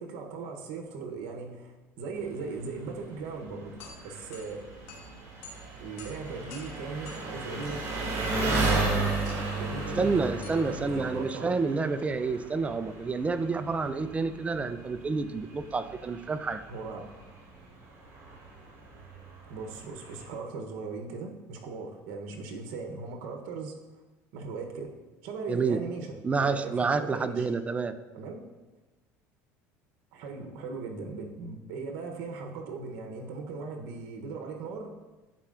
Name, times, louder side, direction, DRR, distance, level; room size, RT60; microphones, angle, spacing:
voice 1, 0.0-3.8 4.0-4.6 5.8-7.8 8.1-8.9 9.5-11.5 16.7-17.1 19.5-23.7 24.3-24.9 25.2-27.5 28.1-28.4 30.1-34.9, right 4 dB, 75° right, 2 dB, 0.9 m, -38 dB
Engine, 2.2-20.3, right 2 dB, 45° right, 2.1 m, -35 dB
sound 1, 3.5-12.5, left 3 dB, 85° left, 1.4 m, -51 dB
voice 2, 10.0-16.6 25.5-25.8 26.2-28.0, right 4 dB, 20° right, 11 dB, 0.4 m, -29 dB
11.0 x 4.3 x 2.5 m, 1.1 s
supercardioid pair, 105°, 7 cm